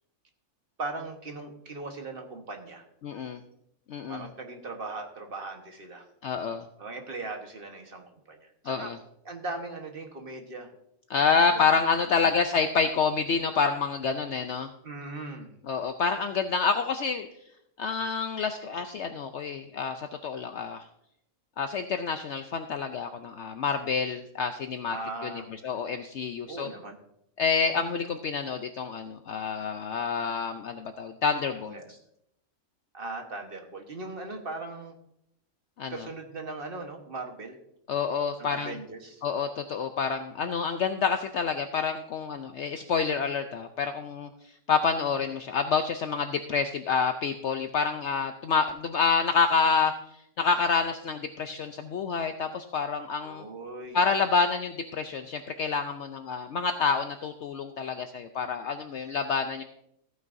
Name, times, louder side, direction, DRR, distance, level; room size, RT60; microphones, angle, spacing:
voice 1, 0.8-2.8 4.1-6.0 6.8-8.9 9.2-10.7 11.4-11.8 12.2-12.3 14.8-15.6 24.9-25.5 26.5-27.0 31.7-31.9 32.9-35.0 35.9-37.6 38.4-39.2 53.2-54.0, right 3 dB, 40° right, 4 dB, 1.4 m, -39 dB
voice 2, 3.0-3.4 3.9-4.3 6.2-6.6 8.7-9.0 11.1-14.7 15.7-17.3 17.8-20.8 21.6-25.0 25.6-26.7 27.4-31.7 35.8-36.1 37.9-38.7 39.2-44.3 44.7-50.0 50.4-53.4 53.9-59.6, left 5 dB, 65° left, 7 dB, 0.8 m, -28 dB
14.5 x 9.3 x 2.6 m, 0.76 s
omnidirectional pair, 1.5 m